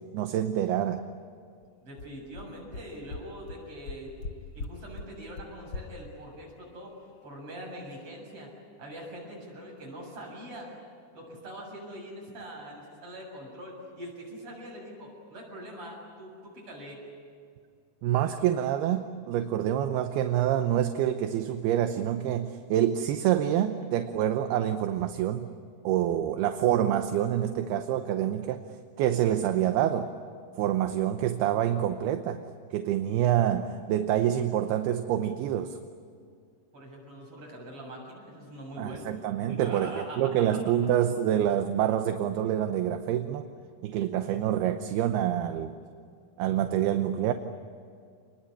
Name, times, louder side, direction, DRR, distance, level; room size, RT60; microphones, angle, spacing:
voice 1, 0.1-1.0 18.0-25.5 25.8-28.6 29.0-30.1 30.6-32.4 32.7-35.8 38.8-43.5 43.8-45.8 46.4-47.3, right 11 dB, 80° right, 7 dB, 2.8 m, -27 dB
sound 1, 1.6-1.7 2.0-2.1 2.4-2.5 2.7-2.8 3.1-3.2 3.5-3.6 3.8-4.3 4.6-4.7 5.0-5.1 5.4-5.5 5.7-5.8, left 4 dB, 60° left, 1.4 m, -37 dB
voice 2, 1.8-4.1 4.5-6.9 7.2-8.5 8.8-10.7 11.1-17.0 36.7-39.1 39.5-40.3, right 1 dB, 35° right, -1 dB, 8.3 m, -43 dB
28.0 x 21.0 x 10.0 m, 2.2 s
omnidirectional pair, 4.7 m